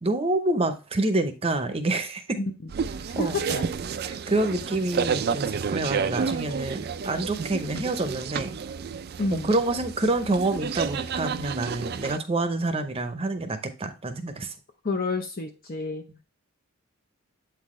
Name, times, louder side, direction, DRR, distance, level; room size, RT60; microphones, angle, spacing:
voice 1, 0.0-2.4 3.1-3.4 4.3-8.6 9.3-14.5, right 2 dB, 25° right, 0.7 m, -27 dB
sound 1, 2.7-12.2, right 6 dB, 45° right, 0.3 m, -31 dB
voice 2, 3.2-3.7 9.2-9.5 14.8-16.0, left 3 dB, 40° left, 0.7 m, -29 dB
8.1 x 4.1 x 3.1 m
head